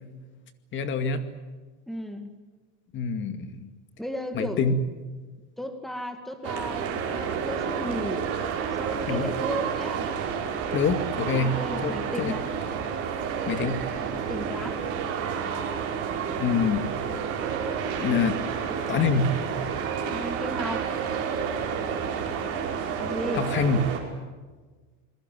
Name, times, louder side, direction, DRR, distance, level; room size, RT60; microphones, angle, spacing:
voice 1, 0.7-1.2 2.9-3.7 4.3-4.8 9.1-9.3 10.7-11.6 11.8-11.9 12.2-12.3 13.5-13.8 16.4-16.9 18.0-18.4 18.9-19.3 23.3-23.8, left 5 dB, 35° left, 9 dB, 2.3 m, -25 dB
voice 2, 1.9-2.3 4.0-4.6 5.6-8.3 8.7-10.1 11.4-12.5 14.3-14.9 20.0-21.0 23.0-23.5, equal, ahead, 7 dB, 2.0 m, -34 dB
sound 1, 6.4-24.0, right 7 dB, 40° right, 5.7 m, -30 dB
28.0 x 21.5 x 7.7 m, 1.3 s
cardioid pair, 155°, 35 cm